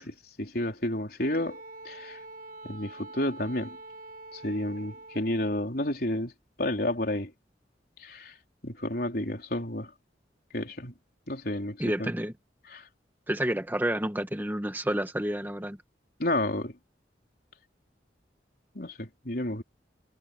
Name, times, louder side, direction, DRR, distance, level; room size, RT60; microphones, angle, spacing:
voice 1, 0.0-2.2 2.6-3.8 4.3-6.3 6.6-7.3 8.0-8.3 8.6-9.9 10.5-10.9 11.3-12.1 12.7-12.9 16.2-16.8 18.7-19.6, left 1 dB, 55° left, 4.2 m, -31 dB
Wind instrument woodwind instrument, 1.2-5.5, right 2 dB, 55° right, 7.6 m, -45 dB
voice 2, 11.8-12.3 13.3-15.8, right 1 dB, 10° right, 1.3 m, -29 dB
head